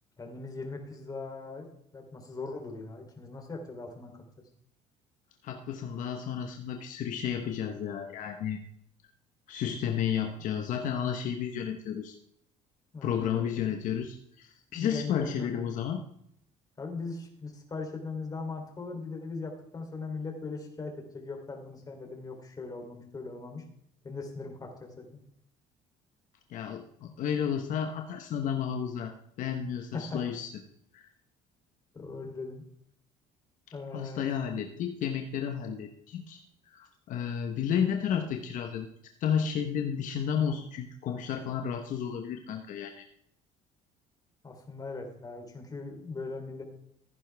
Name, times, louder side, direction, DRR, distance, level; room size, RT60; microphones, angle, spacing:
voice 1, 0.2-1.7 1.9-4.2 12.9-13.7 14.7-15.7 16.8-23.6 24.0-25.2 29.9-30.3 31.9-32.6 33.7-34.3 44.4-46.6, left 3 dB, 25° left, 2 dB, 3.3 m, -39 dB
voice 2, 5.4-8.6 9.5-12.2 13.0-16.0 26.5-30.5 30.9-31.0 33.9-36.4 36.7-38.9 39.2-43.0, left 8 dB, 65° left, 5 dB, 1.1 m, -32 dB
15.0 x 10.0 x 3.5 m, 0.71 s
cardioid pair, 105°, 15 cm